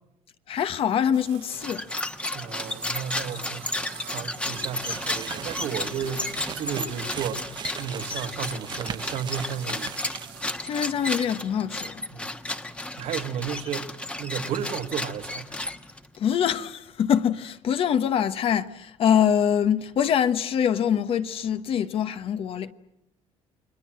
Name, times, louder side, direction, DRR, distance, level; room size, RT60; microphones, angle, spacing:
voice 1, 0.5-1.8 10.6-12.0 16.2-22.7, left 8 dB, 50° left, 1.2 m, -24 dB
sound 1, 1.1-10.7, right 13 dB, 85° right, 2.1 m, -47 dB
sound 2, 1.5-16.2, left 1 dB, 10° left, 1.3 m, -33 dB
voice 2, 2.3-10.0 12.1-12.3 13.0-15.6, right 8 dB, 70° right, 1.9 m, -33 dB
sound 3, 4.6-10.5, right 8 dB, 40° right, 0.9 m, -39 dB
30.0 x 22.5 x 7.5 m
cardioid pair, 130°, 12 cm